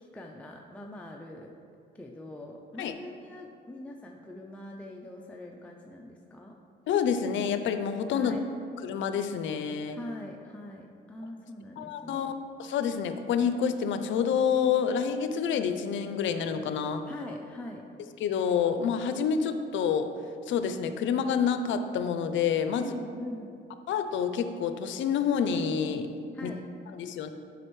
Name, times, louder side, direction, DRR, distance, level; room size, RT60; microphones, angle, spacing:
voice 1, 0.0-1.5 1.9-6.5 8.1-8.4 9.9-12.3 17.1-17.9 22.7-23.6 26.3-26.7, left 1 dB, 5° left, 0 dB, 0.4 m, -43 dB
voice 2, 6.9-8.3 8.8-10.0 11.8-12.3 12.6-17.0 18.2-20.1 20.5-22.9 23.9-26.1 26.4-26.5 26.9-27.3, left 7 dB, 75° left, 9 dB, 0.5 m, -28 dB
7.6 x 5.1 x 3.1 m, 2.5 s
cardioid pair, 90°, 20 cm